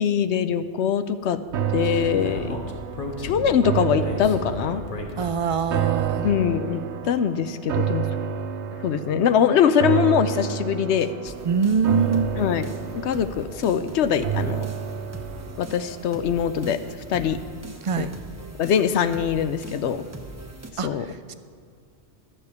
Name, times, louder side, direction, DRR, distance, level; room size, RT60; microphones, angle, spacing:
voice 1, 0.0-1.4 1.7-2.6 3.2-4.8 6.2-8.1 8.8-11.3 12.4-12.7 12.9-14.7 15.6-16.8 17.1-17.4 18.0-18.1 18.6-20.0 20.8-21.1, left 8 dB, 75° left, 12 dB, 0.9 m, -22 dB
Speech, 1.5-6.4, left 2 dB, 50° left, 1.4 m, -36 dB
sound 1, 1.5-16.8 17.2-17.3, right 8 dB, 75° right, 0.9 m, -30 dB
voice 2, 5.2-6.3 11.4-12.3 17.8-18.1 20.8-21.3, right 6 dB, 50° right, 11 dB, 0.4 m, -24 dB
sound 2, 11.3-20.7, right 1 dB, 15° right, 0.9 m, -41 dB
11.5 x 6.9 x 8.1 m, 2.2 s
omnidirectional pair, 1.2 m